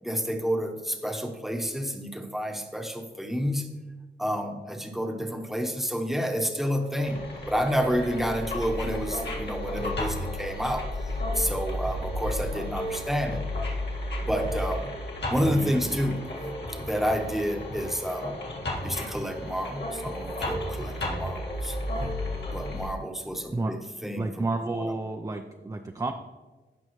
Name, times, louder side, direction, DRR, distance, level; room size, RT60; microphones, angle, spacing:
voice 1, 0.0-3.7 4.2-10.9 11.3-13.4 14.2-14.9 15.3-16.3 16.7-18.3 18.8-21.8 22.5-24.9, equal, ahead, 4 dB, 1.0 m, -30 dB
sound 1, 7.0-22.9, left 1 dB, 65° left, 1.8 m, -33 dB
voice 2, 15.3-16.2 23.5-23.7 24.2-26.1, right 2 dB, 20° right, 5 dB, 0.5 m, -31 dB
16.0 x 5.4 x 3.1 m, 1.2 s
wide cardioid pair, 100°, 19 cm